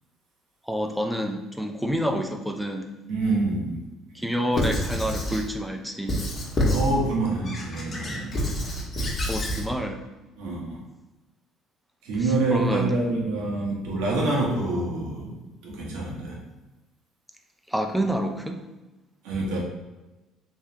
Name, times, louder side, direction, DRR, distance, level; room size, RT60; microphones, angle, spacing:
voice 1, 0.7-2.9 4.1-6.2 9.3-10.0 12.5-13.0 17.7-18.6, equal, ahead, 4 dB, 0.5 m, -28 dB
voice 2, 3.1-3.8 6.7-8.4 10.4-10.8 12.0-16.4 19.2-19.6, right 2 dB, 85° right, -3 dB, 1.1 m, -26 dB
Squeak / Writing, 4.5-5.5 6.1-7.0 7.4-9.7, left 1 dB, 45° left, 1.1 m, -27 dB
3.6 x 3.1 x 2.8 m, 1.1 s
supercardioid pair, 80°, 0 cm